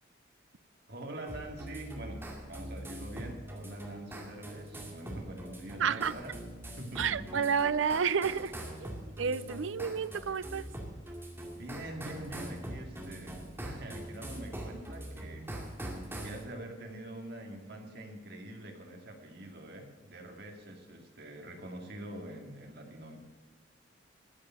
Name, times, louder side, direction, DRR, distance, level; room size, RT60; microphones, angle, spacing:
voice 1, 0.9-6.3 6.6-7.4 11.5-15.5 16.2-23.2, right 1 dB, 55° right, 2.3 m, -45 dB
sound 1, 1.3-16.4, right 1 dB, 10° right, 2.2 m, -43 dB
voice 2, 5.8-6.1 7.0-8.5 8.8-10.7, right 6 dB, 80° right, 0.5 m, -30 dB
14.0 x 6.9 x 7.7 m
head